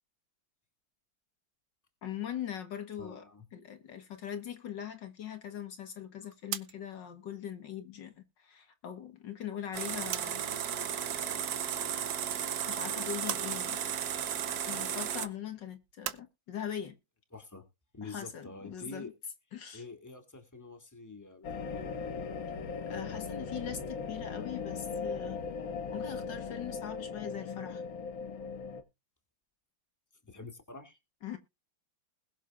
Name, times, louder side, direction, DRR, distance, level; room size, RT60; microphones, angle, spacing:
voice 1, 2.0-3.2 3.5-10.4 11.2-11.4 12.6-13.9 14.7-17.0 18.0-19.1 19.5-19.8 22.9-25.4 25.9-27.8 31.2-31.4, left 9 dB, 70° left, 2.1 m, -41 dB
voice 2, 3.0-3.5 17.3-17.7 17.9-19.1 19.7-21.9 30.2-31.0, left 3 dB, 10° left, 2.3 m, -47 dB
sound 1, 5.9-10.6 10.9-11.9 12.3-16.2, right 12 dB, 75° right, 1.4 m, -43 dB
sound 2, 9.7-15.3, right 9 dB, 60° right, 1.3 m, -34 dB
sound 3, 21.4-28.8, left 5 dB, 90° left, 2.5 m, -38 dB
20.5 x 7.2 x 2.5 m
omnidirectional pair, 2.1 m